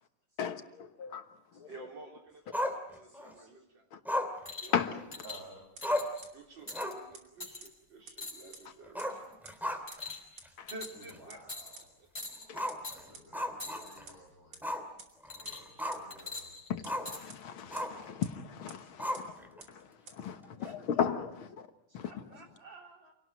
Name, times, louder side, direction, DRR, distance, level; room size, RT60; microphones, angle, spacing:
voice 1, 0.4-1.7 3.9-4.0 4.7-5.1 10.6-10.7 12.5-12.7 16.7-21.7 21.9-22.2, left 8 dB, 75° left, 2.2 m, -36 dB
voice 2, 1.7-3.9 4.6-4.8 6.3-9.1 10.7-11.4 12.0-12.1 20.6-20.8 22.0-23.1, right 2 dB, 60° right, 4.2 m, -50 dB
Growling, 2.5-3.3 4.1-5.3 5.6-5.7 5.8-6.3 6.6-7.1 7.4-7.5 8.9-10.1 10.4-10.5 11.1-11.2 12.5-14.1 14.6-14.9 15.2-16.2 16.8-17.2 17.7-18.1 19.0-19.6, left 1 dB, ahead, 2.5 m, -35 dB
voice 3, 2.9-3.5 5.2-5.7 6.1-6.2 10.9-11.9 12.9-14.6 15.3-16.6 18.0-18.1 18.8-19.3 20.3-20.6 21.9-22.0, right 2 dB, 45° right, 8.7 m, -56 dB
sound 1, 4.5-4.8 5.1-5.4 5.8-6.2 6.7-6.9 7.4-7.7 8.2-8.7 9.1-9.3 9.9-10.4 10.7-11.1 11.5-11.8 12.1-12.5 12.8-13.0 13.6-14.0 15.3-15.8 16.1-17.2 18.0-18.1, left 3 dB, 20° left, 5.1 m, -43 dB
sound 2, 5.8-5.9 6.2-6.3 6.7-6.8 7.1-7.2 7.6-7.7 8.1-8.2 8.5-8.6 9.0-9.1 9.4-9.5 9.9-10.0 10.4-10.5 10.8-10.9 11.3-11.4 11.8-11.9 12.2-12.3 12.7-12.8 13.1-13.2 13.6-13.7 14.1-14.2 14.5-14.6 15.0-15.1 15.4-15.5 15.9-16.0 16.4-16.5 16.8-16.9 17.3-17.4 17.8-17.9 18.2-18.3 18.7-18.8 19.1-19.2 19.6-19.7 20.1-20.2, right 5 dB, 85° right, 3.7 m, -48 dB
27.5 x 18.0 x 9.2 m
omnidirectional pair, 2.3 m